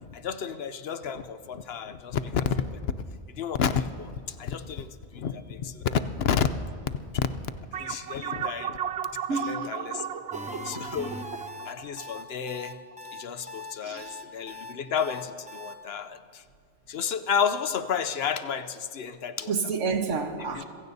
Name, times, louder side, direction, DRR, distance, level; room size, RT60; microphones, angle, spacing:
voice 1, 0.0-2.8 3.3-6.5 7.7-8.8 9.4-10.0 10.6-11.1 11.6-12.8 13.1-16.4 16.9-19.5 20.5-20.6, left 7 dB, 60° left, 0.8 m, -31 dB
sound 1, 7.7-12.6, right 9 dB, 70° right, 0.8 m, -35 dB
voice 2, 9.3-10.8 13.8-14.1 19.5-20.6, right 4 dB, 85° right, 1.4 m, -31 dB
sound 2, 10.3-15.7, left 1 dB, 5° right, 0.8 m, -40 dB
27.0 x 16.0 x 2.7 m
omnidirectional pair, 1.2 m